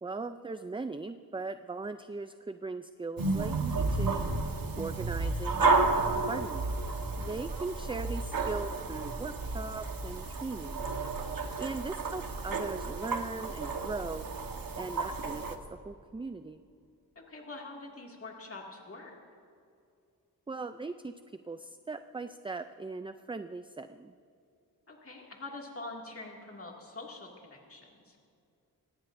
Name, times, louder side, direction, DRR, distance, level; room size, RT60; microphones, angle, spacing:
voice 1, 0.0-4.4 4.8-6.8 7.2-10.9 11.6-14.3 14.8-15.6 15.8-16.6 20.5-24.1, right 3 dB, 15° right, 9 dB, 0.4 m, -39 dB
sound 1, 3.2-15.6, right 3 dB, 60° right, 1.3 m, -32 dB
voice 2, 11.2-11.6 17.2-19.1 24.9-28.2, left 2 dB, 35° left, -1 dB, 2.3 m, -45 dB
24.5 x 20.0 x 2.6 m, 2.5 s
wide cardioid pair, 120°, 38 cm